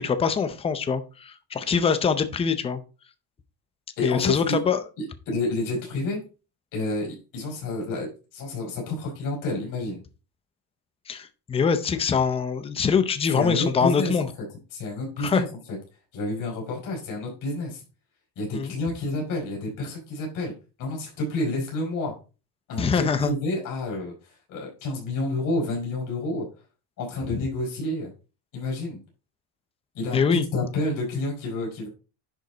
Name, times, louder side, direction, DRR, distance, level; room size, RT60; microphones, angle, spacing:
voice 1, 0.0-2.8 4.0-4.8 11.1-14.3 15.2-15.4 18.5-18.7 22.8-23.3 27.3-27.4 30.1-30.4, left 6 dB, 15° left, 10 dB, 0.5 m, -24 dB
voice 2, 4.0-4.6 5.0-6.2 6.7-10.0 13.3-14.1 14.7-15.5 16.1-17.8 18.4-20.5 20.8-22.1 22.7-26.5 27.0-28.1 28.5-29.0 29.9-30.2 30.5-31.9, left 2 dB, 45° left, -2 dB, 5.4 m, -29 dB
10.5 x 5.3 x 4.0 m, 0.33 s
cardioid pair, 170°, 43 cm